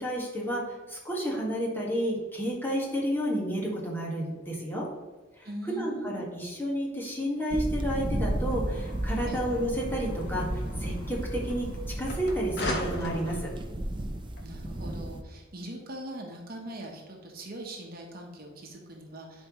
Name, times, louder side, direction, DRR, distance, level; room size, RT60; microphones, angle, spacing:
voice 1, 0.0-4.9 5.4-5.5 5.8-11.7 12.0-13.5, equal, 10° left, -4 dB, 1.8 m, -31 dB
voice 2, 5.4-6.3 9.2-9.5 14.4-19.5, right 1 dB, 50° right, 0 dB, 1.2 m, -41 dB
sound 1, 7.5-15.2, right 1 dB, 25° right, 0.6 m, -33 dB
sound 2, 8.4-15.0, left 1 dB, 60° left, 1.1 m, -40 dB
11.0 x 4.5 x 3.1 m, 1.3 s
head